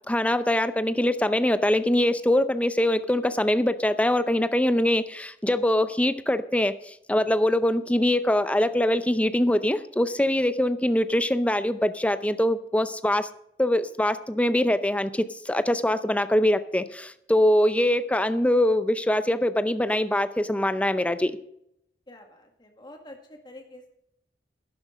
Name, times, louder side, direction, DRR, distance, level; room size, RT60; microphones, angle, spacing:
voice 1, 0.1-13.3 13.6-21.4, left 1 dB, 10° left, 12 dB, 0.6 m, -23 dB
voice 2, 22.1-23.9, left 1 dB, 25° left, 3 dB, 2.0 m, -47 dB
12.0 x 10.5 x 5.1 m, 0.75 s
head